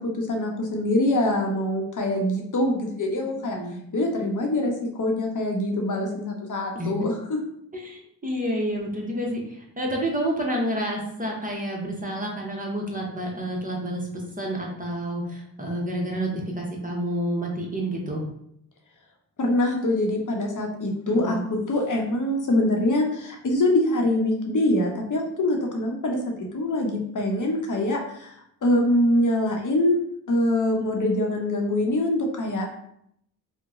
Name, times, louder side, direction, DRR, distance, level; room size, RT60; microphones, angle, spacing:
voice 1, 0.2-3.6 3.9-4.7 5.0-7.4 19.4-21.4 21.7-28.4 28.6-30.0 30.3-32.6, left 1 dB, 50° left, 1 dB, 0.8 m, -24 dB
voice 2, 7.7-14.1 14.4-18.2 21.1-21.4, right 1 dB, 20° right, -1 dB, 0.8 m, -29 dB
2.9 x 2.1 x 3.6 m, 0.72 s
cardioid pair, 65°, 39 cm